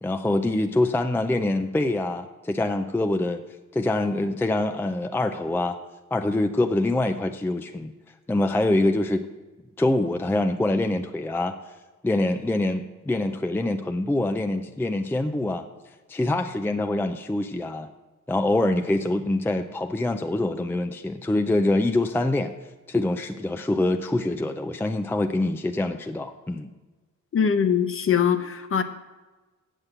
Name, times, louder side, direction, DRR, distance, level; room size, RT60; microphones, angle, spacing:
voice 1, 0.0-3.4 3.7-5.8 6.1-7.9 8.3-9.3 9.8-11.6 12.0-15.7 16.1-17.9 18.3-22.5 22.9-26.7, left 2 dB, 5° left, 7 dB, 0.4 m, -25 dB
voice 2, 27.3-28.8, left 7 dB, 45° left, 9 dB, 0.9 m, -22 dB
8.3 x 7.3 x 7.8 m, 1.2 s
cardioid pair, 120°, 31 cm